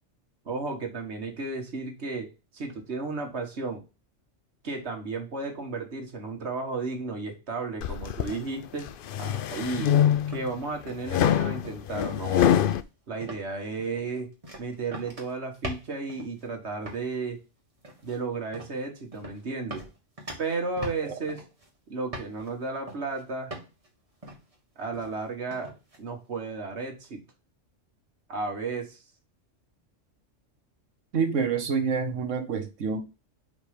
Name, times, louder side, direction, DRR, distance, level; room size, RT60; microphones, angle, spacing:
voice 1, 0.5-3.8 4.6-8.9 9.2-10.0 10.3-12.6 13.1-14.3 14.6-17.4 18.0-19.9 20.4-21.4 21.9-23.5 24.8-25.7 26.0-27.2 28.3-29.0, right 3 dB, 60° right, 1.7 m, -33 dB
sound 1, 7.8-8.4 8.9-10.5 11.1-12.8, left 10 dB, 60° left, 0.6 m, -24 dB
sound 2, 9.7-10.0 10.3-11.3 11.5-11.9 12.3-12.8 13.2-13.5 13.8-16.5 16.8-17.1 17.8-18.2 18.5-18.8 19.1-19.4 19.7-21.7 22.1-22.5 22.9-23.2 23.5-23.9 24.2-24.5 24.9-25.2 25.5-26.0, right 1 dB, 30° right, 1.8 m, -42 dB
voice 2, 31.1-33.0, right 5 dB, 80° right, 1.4 m, -27 dB
5.1 x 4.2 x 4.9 m
omnidirectional pair, 1.3 m